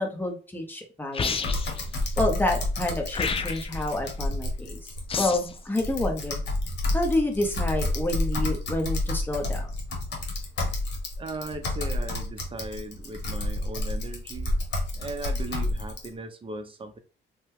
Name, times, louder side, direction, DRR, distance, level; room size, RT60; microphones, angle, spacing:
voice 1, 0.0-1.5 2.2-4.8 5.2-6.4 6.9-9.7, left 1 dB, 10° left, 3 dB, 0.8 m, -28 dB
sound 1, 1.1-1.8 3.1-3.8 5.1-5.6, left 5 dB, 30° left, 0.4 m, -29 dB
Typing, 1.4-16.1, left 2 dB, 60° left, 1.0 m, -30 dB
voice 2, 11.2-14.6 14.9-17.0, right 2 dB, 25° right, 7 dB, 0.6 m, -37 dB
2.8 x 2.2 x 3.4 m, 0.36 s
cardioid pair, 90°, 20 cm